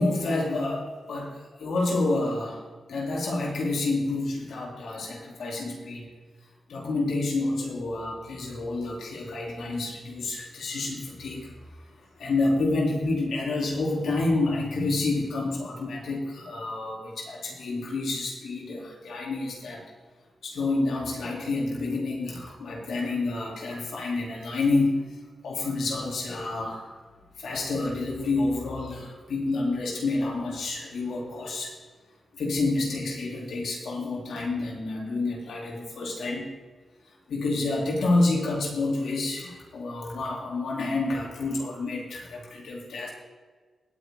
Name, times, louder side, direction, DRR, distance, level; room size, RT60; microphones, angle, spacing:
voice 1, 0.0-2.6 2.9-6.1 6.7-11.5 12.2-19.8 20.4-25.2 25.4-27.0 27.4-31.8 32.3-36.5 37.3-43.1, left 2 dB, 80° left, -2 dB, 3.9 m, -28 dB
20.5 x 9.3 x 4.1 m, 1.4 s
cardioid pair, 50°, 0 cm